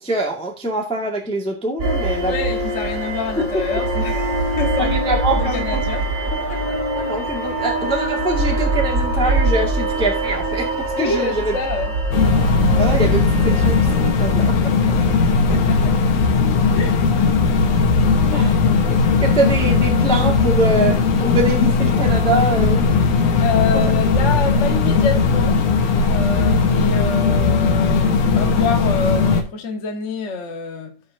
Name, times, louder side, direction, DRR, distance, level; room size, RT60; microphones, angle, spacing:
voice 1, 0.0-2.3 4.8-5.8 6.9-10.7 11.0-11.5 12.8-14.7 18.3-18.5 19.2-22.8 23.7-24.0, right 1 dB, 5° left, 1.2 m, -23 dB
sound 1, 1.8-17.1, right 2 dB, 30° right, 3.7 m, -23 dB
voice 2, 2.2-6.8 11.0-12.0 14.9-16.0 16.7-17.0 18.3-18.6 23.4-25.6 26.1-31.0, left 4 dB, 40° left, 1.0 m, -27 dB
sound 2, 12.1-29.4, left 4 dB, 80° left, 2.7 m, -17 dB
15.5 x 6.0 x 2.7 m
omnidirectional pair, 3.4 m